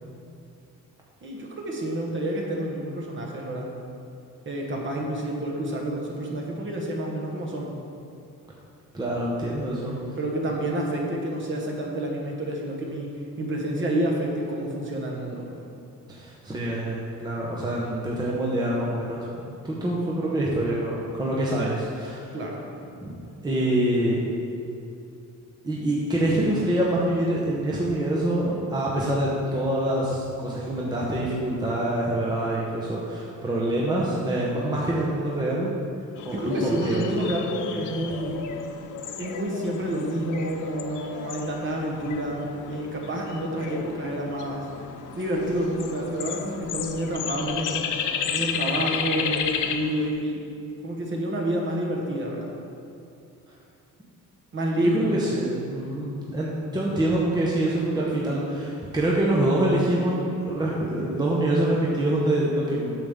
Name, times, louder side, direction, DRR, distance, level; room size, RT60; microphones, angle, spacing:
voice 1, 1.2-3.7 4.4-7.7 10.2-13.1 13.4-15.7 22.3-22.6 36.3-38.4 39.2-44.7 45.1-47.8 48.3-50.4 50.8-52.5 54.5-55.1, right 1 dB, 35° right, -1 dB, 1.3 m, -28 dB
voice 2, 8.9-10.2 16.1-19.3 19.6-22.3 23.0-23.2 23.4-24.2 25.6-35.7 36.2-37.2 54.8-62.9, right 1 dB, 15° right, -5 dB, 0.8 m, -25 dB
sound 1, 36.2-50.1, left 7 dB, 65° left, 0.6 m, -33 dB
8.8 x 6.8 x 3.6 m, 2.6 s
cardioid pair, 145°, 33 cm